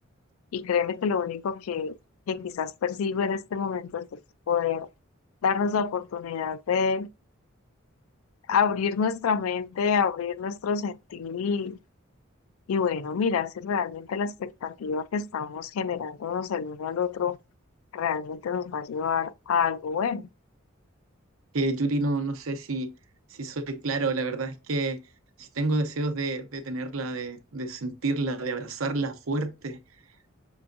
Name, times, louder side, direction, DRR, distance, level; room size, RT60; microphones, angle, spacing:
voice 1, 0.5-2.0 2.3-4.1 4.5-4.9 5.4-7.1 8.5-11.8 12.7-17.4 17.9-20.3, left 6 dB, 80° left, 0.4 m, -27 dB
voice 2, 21.5-22.9 23.3-25.0 25.4-29.8, right 2 dB, 80° right, 0.7 m, -29 dB
6.2 x 3.4 x 2.5 m
head